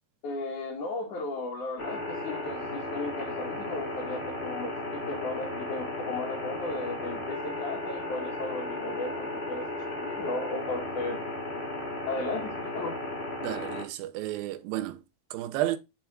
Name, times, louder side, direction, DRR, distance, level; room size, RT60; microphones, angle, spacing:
voice 1, 0.2-11.2 12.1-12.9, left 2 dB, 60° left, 3.1 m, -35 dB
sound 1, 1.8-13.8, left 1 dB, 25° left, 1.5 m, -35 dB
voice 2, 13.4-15.0 15.3-15.8, right 14 dB, 85° right, 2.5 m, -32 dB
7.2 x 4.3 x 5.1 m
omnidirectional pair, 4.2 m